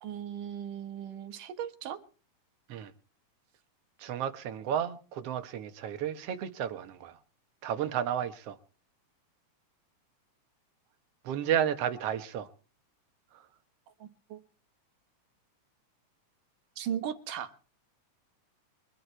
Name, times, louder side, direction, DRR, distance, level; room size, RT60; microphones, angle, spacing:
voice 1, 0.0-2.0 14.0-14.4 16.8-17.5, right 9 dB, 85° right, 3.0 m, -37 dB
voice 2, 4.0-7.2 7.6-8.6 11.2-12.5 13.3-13.4, right 9 dB, 60° right, 1.9 m, -32 dB
23.5 x 11.0 x 4.5 m
omnidirectional pair, 3.6 m